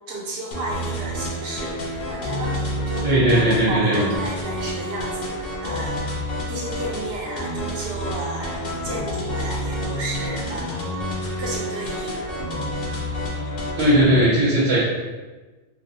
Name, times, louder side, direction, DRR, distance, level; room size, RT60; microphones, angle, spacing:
voice 1, 0.1-6.2 6.5-10.8 11.4-12.2, right 1 dB, 65° right, -3 dB, 0.9 m, -33 dB
sound 1, 0.5-14.2, equal, 60° left, 0.8 m, -29 dB
voice 2, 3.0-4.0 13.8-14.8, right 1 dB, 85° right, -6 dB, 1.0 m, -17 dB
2.9 x 2.7 x 2.6 m, 1.2 s
omnidirectional pair, 1.1 m